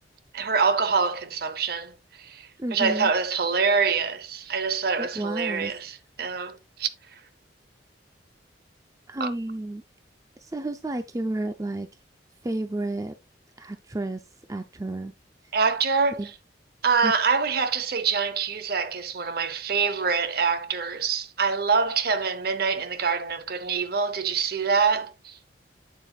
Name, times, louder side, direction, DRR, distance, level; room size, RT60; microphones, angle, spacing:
voice 1, 0.3-6.9 9.2-9.3 15.5-16.3 16.8-25.4, right 5 dB, 55° right, 0.7 m, -25 dB
voice 2, 2.6-3.1 5.0-5.7 9.1-9.8 10.4-11.9 12.4-13.1 13.6-14.2 14.5-15.1 16.2-16.3 17.0-17.1, right 2 dB, 15° right, 0.5 m, -31 dB
8.2 x 7.4 x 2.3 m
head